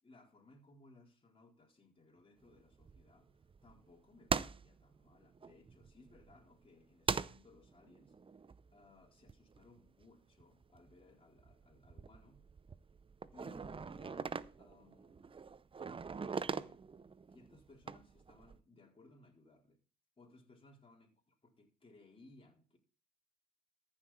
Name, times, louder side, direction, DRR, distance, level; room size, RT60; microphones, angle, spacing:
voice 1, 0.0-3.3 3.6-8.1 8.7-12.4 13.3-15.3 16.2-16.8 17.3-19.8 20.2-22.8, left 2 dB, 25° left, 4.5 m, -63 dB
sound 1, 2.5-3.9 4.3-6.6 7.1-10.0 10.4-11.1 11.4-18.6, right 5 dB, 25° right, 0.6 m, -42 dB
14.0 x 7.6 x 4.4 m
cardioid pair, 75°, 20 cm